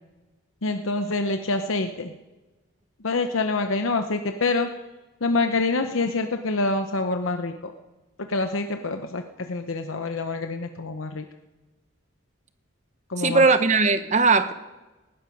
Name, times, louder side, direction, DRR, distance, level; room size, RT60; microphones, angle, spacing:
voice 1, 0.6-2.1 3.0-4.7 5.2-7.7 8.3-9.2 9.5-11.2 13.1-13.4, left 3 dB, 85° left, 6 dB, 0.9 m, -26 dB
voice 2, 13.2-14.5, right 4 dB, 35° right, 11 dB, 0.9 m, -19 dB
19.0 x 14.0 x 5.3 m, 1.1 s
head